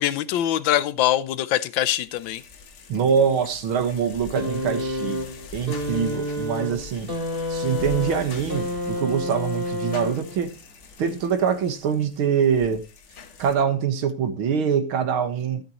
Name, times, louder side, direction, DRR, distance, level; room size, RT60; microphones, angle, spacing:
voice 1, 0.0-2.4, left 12 dB, 70° left, 1.3 m, -23 dB
sound 1, 2.0-13.6, left 5 dB, 50° left, 0.9 m, -43 dB
voice 2, 2.9-5.2 5.5-7.1 7.5-10.5 11.0-12.9 13.4-15.6, right 7 dB, 70° right, 2.1 m, -24 dB
sound 2, 4.3-10.5 11.6-11.7, left 1 dB, 25° right, 2.2 m, -29 dB
13.0 x 8.2 x 2.9 m
omnidirectional pair, 2.4 m